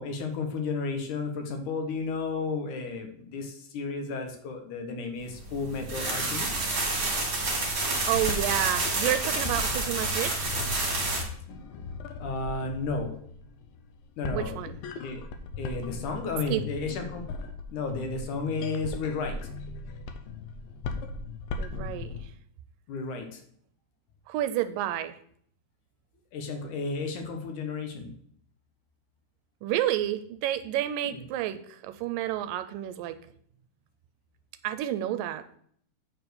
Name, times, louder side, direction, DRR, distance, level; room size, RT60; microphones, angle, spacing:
voice 1, 0.0-6.6 12.2-13.2 14.2-14.6 15.0-15.2 15.6-17.2 17.7-19.4 22.9-23.4 26.3-28.1 31.0-31.2, left 4 dB, 65° left, 4 dB, 2.4 m, -33 dB
sound 1, 5.5-11.2, right 2 dB, 40° right, 2.8 m, -29 dB
voice 2, 7.7-10.5 14.3-14.8 16.5-16.6 21.6-22.2 24.3-25.2 29.6-33.2 34.6-35.5, right 12 dB, 80° right, 11 dB, 2.2 m, -30 dB
sound 2, 7.9-22.3, left 3 dB, 85° left, 2.6 m, -38 dB
9.1 x 4.3 x 6.8 m, 0.62 s
omnidirectional pair, 4.0 m